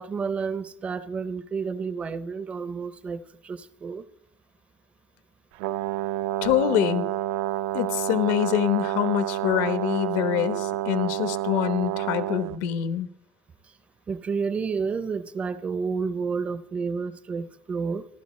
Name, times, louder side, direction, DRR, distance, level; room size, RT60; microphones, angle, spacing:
voice 1, 0.0-4.1 14.1-18.1, right 5 dB, 20° right, 0.5 m, -30 dB
Brass instrument, 5.6-12.6, right 14 dB, 85° right, 0.5 m, -29 dB
voice 2, 6.4-7.0 7.7-13.1, left 12 dB, 75° left, 1.1 m, -25 dB
28.0 x 11.5 x 3.2 m
cardioid pair, 175°, 7 cm